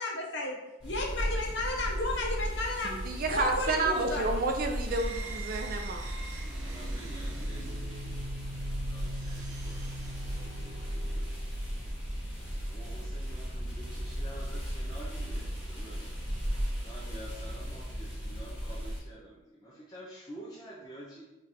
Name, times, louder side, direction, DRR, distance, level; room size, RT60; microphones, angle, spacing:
voice 1, 0.0-0.6 0.8-4.2, left 2 dB, 60° left, 0 dB, 0.8 m, -33 dB
sound 1, 0.8-19.0, equal, 5° right, 1.4 m, -36 dB
voice 2, 2.8-6.2, right 3 dB, 45° right, 4 dB, 0.4 m, -30 dB
sound 2, 4.7-11.4, right 2 dB, 80° right, 0.7 m, -43 dB
voice 3, 6.4-8.0 8.9-11.4 12.2-12.3 12.7-16.2 16.8-21.2, right 1 dB, 20° left, -7 dB, 0.6 m, -49 dB
3.8 x 2.5 x 4.2 m, 1.0 s
head